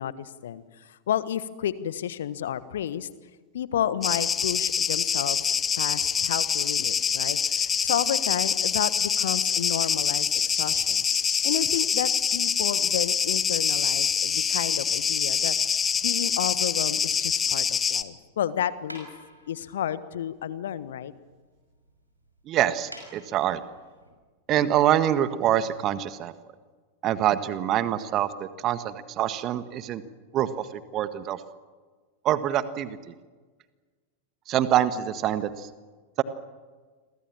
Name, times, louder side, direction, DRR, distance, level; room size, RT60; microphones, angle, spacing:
voice 1, 0.0-3.1 3.5-11.0 11.4-15.7 16.0-19.1 19.5-21.1, left 10 dB, 60° left, 15 dB, 1.4 m, -31 dB
sound 1, 4.0-18.0, left 7 dB, 20° left, 1.2 m, -25 dB
sound 2, 17.1-24.1, equal, 90° right, 6.2 m, -51 dB
voice 2, 22.5-23.6 24.5-26.3 27.0-30.0 30.3-31.4 32.2-33.1 34.5-35.7 36.2-36.3, right 11 dB, 35° right, 12 dB, 1.7 m, -25 dB
29.5 x 23.0 x 7.4 m, 1.4 s
figure-of-eight pair, 90°, 0 cm